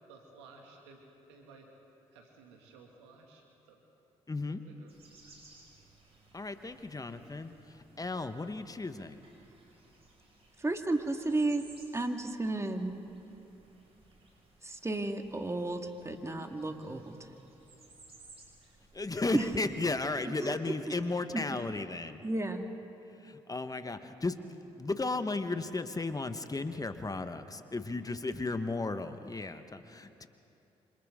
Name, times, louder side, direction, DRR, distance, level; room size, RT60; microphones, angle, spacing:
voice 1, 0.1-1.7 2.1-3.8 4.5-4.9 5.2-5.4, right 4 dB, 90° right, 1 dB, 2.2 m, -56 dB
voice 2, 4.3-4.6 6.3-7.5 8.0-9.2 18.9-22.2 23.2-24.4 24.8-30.3, left 3 dB, 25° left, 10 dB, 1.2 m, -34 dB
sound 1, 4.9-19.8, right 2 dB, 40° right, 5.7 m, -60 dB
voice 3, 10.6-11.6 11.9-13.0 14.6-17.1 19.3-19.5 20.4-20.6 21.3-21.4 22.2-22.7, right 2 dB, 20° right, 5 dB, 2.0 m, -32 dB
27.5 x 26.0 x 3.7 m, 2.9 s
hypercardioid pair, 45°, 15 cm